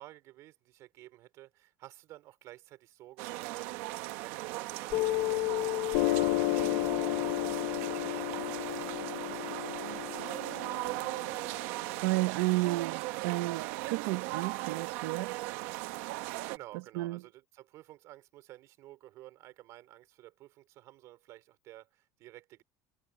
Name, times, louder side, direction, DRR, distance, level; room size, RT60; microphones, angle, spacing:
voice 1, 0.0-8.6 16.2-22.6, right 16 dB, 45° right, 3.7 m, -52 dB
sound 1, 3.2-16.6, right 20 dB, 70° right, 1.2 m, -38 dB
Piano, 4.9-12.0, left 18 dB, 65° left, 1.2 m, -32 dB
voice 2, 11.5-15.4 16.9-17.2, right 19 dB, 85° right, 1.3 m, -32 dB
cardioid pair, 180°, 7 cm